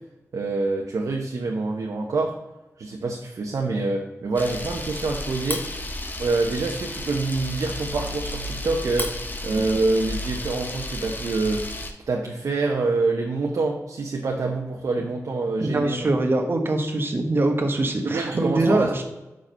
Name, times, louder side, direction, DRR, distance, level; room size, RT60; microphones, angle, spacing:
voice 1, 0.3-2.4 2.8-5.7 6.2-11.7 12.1-16.1 18.0-19.0, right 3 dB, 85° right, 0 dB, 0.9 m, -26 dB
Camera, 4.4-11.9, left 1 dB, 35° left, 0.9 m, -32 dB
voice 2, 15.6-19.0, right 2 dB, 40° right, 4 dB, 1.2 m, -23 dB
6.1 x 5.0 x 5.4 m, 1.0 s
wide cardioid pair, 125°, 6 cm